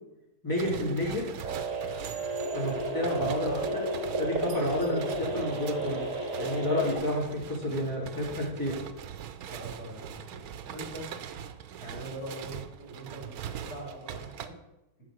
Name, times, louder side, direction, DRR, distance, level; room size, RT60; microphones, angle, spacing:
voice 1, 0.4-1.3 2.5-3.8 4.2-6.0 6.4-8.8, left 1 dB, 15° left, -4 dB, 3.0 m, -30 dB
sound 1, 0.5-14.5, right 9 dB, 80° right, 1.1 m, -42 dB
sound 2, 1.4-6.9, right 2 dB, 55° right, 2.2 m, -33 dB
voice 2, 8.1-8.7 9.5-10.4 10.7-11.1 11.8-13.4 13.6-14.5, right 1 dB, 80° left, -4 dB, 3.8 m, -43 dB
10.5 x 5.0 x 6.2 m, 0.93 s
omnidirectional pair, 1.6 m